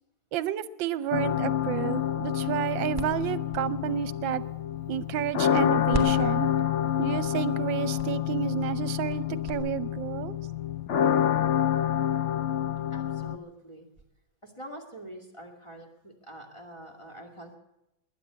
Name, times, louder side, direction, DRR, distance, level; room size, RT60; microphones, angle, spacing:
voice 1, 0.3-4.4 4.9-6.5 7.0-10.4, right 11 dB, 80° right, 15 dB, 1.4 m, -31 dB
sound 1, 1.1-13.4, left 10 dB, 70° left, 0.7 m, -28 dB
sound 2, 2.0-5.6 5.9-9.5, right 4 dB, 10° right, 2.1 m, -40 dB
voice 2, 12.5-13.9 14.4-17.6, right 1 dB, 15° left, 1 dB, 2.3 m, -45 dB
21.5 x 9.7 x 6.9 m, 0.88 s
omnidirectional pair, 2.1 m